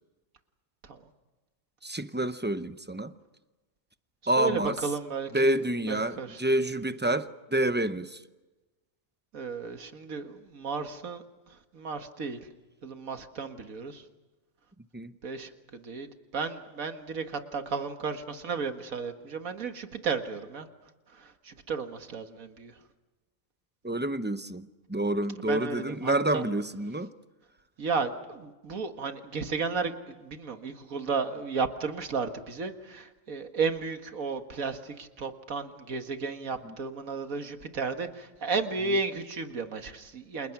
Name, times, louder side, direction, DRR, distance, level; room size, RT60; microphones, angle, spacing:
voice 1, 1.8-3.1 4.3-4.8 5.3-8.2 14.9-15.1 23.8-27.1 36.6-36.8 38.9-39.0, right 1 dB, 10° right, 0.5 m, -28 dB
voice 2, 4.4-5.5 5.9-6.4 9.3-11.2 11.7-12.4 12.8-14.0 15.2-15.5 15.8-16.1 16.3-17.2 17.5-20.7 21.5-22.7 25.4-26.4 27.8-29.9 30.2-40.5, right 4 dB, 85° right, 2.1 m, -33 dB
30.0 x 28.0 x 6.0 m
omnidirectional pair, 1.4 m